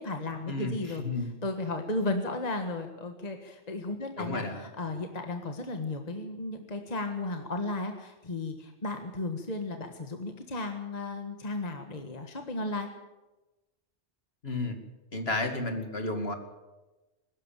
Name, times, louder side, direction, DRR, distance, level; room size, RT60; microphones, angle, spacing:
voice 1, 0.0-12.9, left 2 dB, 35° left, 5 dB, 1.6 m, -34 dB
voice 2, 4.2-4.7 14.4-14.8 15.1-16.3, left 2 dB, 55° left, 5 dB, 2.7 m, -32 dB
22.5 x 13.0 x 9.1 m, 1.1 s
omnidirectional pair, 1.3 m